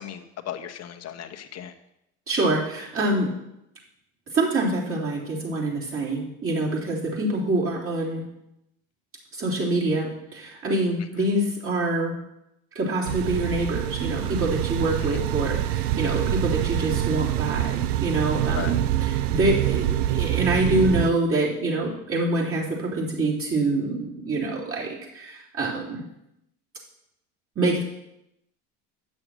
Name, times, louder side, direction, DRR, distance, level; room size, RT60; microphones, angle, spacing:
voice 1, 0.0-1.7 15.0-15.2 18.5-18.7, left 10 dB, 45° left, 6 dB, 1.1 m, -36 dB
voice 2, 2.3-3.3 4.3-8.2 9.3-12.1 12.8-26.0 27.6-27.8, right 2 dB, 35° right, -4 dB, 3.5 m, -25 dB
sound 1, 13.1-21.1, right 13 dB, 80° right, 0.5 m, -25 dB
8.6 x 6.5 x 6.3 m, 0.85 s
supercardioid pair, 85°, 37 cm